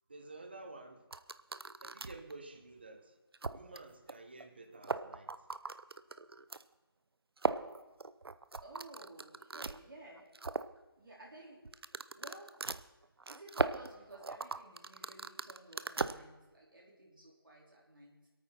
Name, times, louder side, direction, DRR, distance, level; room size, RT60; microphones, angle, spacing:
voice 1, 0.1-1.1 1.8-3.1 3.5-5.3, right 2 dB, 25° right, 7 dB, 0.8 m, -51 dB
sound 1, 1.1-2.3 2.8-2.9 3.3-3.8 4.1-4.2 4.4-4.5 4.8-6.6 7.4-9.8 10.2-10.7 11.7-16.1, right 3 dB, 80° right, 0.6 m, -38 dB
voice 2, 8.6-10.3 11.0-11.6 12.2-12.5 13.2-18.3, right 2 dB, 60° right, -3 dB, 4.1 m, -54 dB
23.5 x 9.0 x 4.4 m, 1.2 s
figure-of-eight pair, 175°, 12 cm